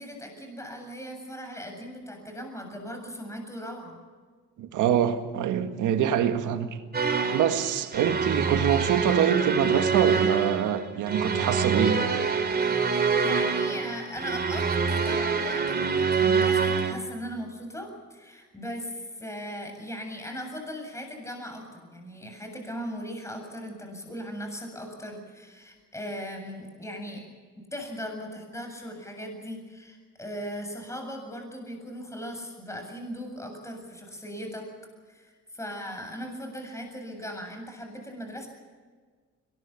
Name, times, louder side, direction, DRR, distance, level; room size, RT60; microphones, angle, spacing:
voice 1, 0.0-4.0 12.9-27.2 27.7-34.7 35.1-38.5, equal, 10° left, 7.7 m, -38 dB
voice 2, 4.6-6.8 7.3-12.0, right 9 dB, 85° right, 2.0 m, -25 dB
sound 1, 6.9-16.9, right 5 dB, 30° right, 3.5 m, -25 dB
22.5 x 20.5 x 7.2 m
cardioid pair, 90°, 30 cm